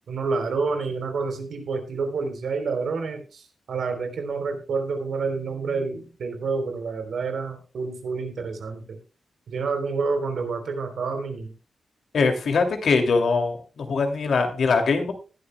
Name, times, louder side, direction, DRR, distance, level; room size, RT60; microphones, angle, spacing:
voice 1, 0.1-3.2 3.7-9.0 9.5-11.5, right 4 dB, 80° right, 5 dB, 3.6 m, -28 dB
voice 2, 12.1-15.1, left 4 dB, 75° left, 5 dB, 2.6 m, -22 dB
19.5 x 11.5 x 2.2 m, 0.34 s
wide cardioid pair, 110°, 0 cm